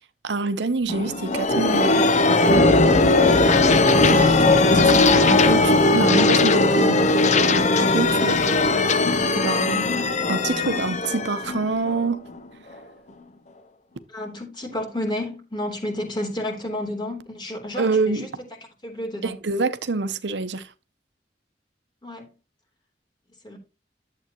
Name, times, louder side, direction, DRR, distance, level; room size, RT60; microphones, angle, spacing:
voice 1, 0.2-2.4 4.1-4.3 4.8-7.1 7.8-8.3 9.3-9.9 10.3-12.3 17.8-18.3 19.2-20.7, right 3 dB, 80° right, 0.8 m, -26 dB
sound 1, 0.9-12.4, left 2 dB, 45° left, 0.8 m, -18 dB
voice 2, 8.1-8.4 14.1-18.3 18.8-19.3 22.0-22.3 23.4-23.6, left 1 dB, 25° left, 3.3 m, -31 dB
11.5 x 7.8 x 3.0 m
head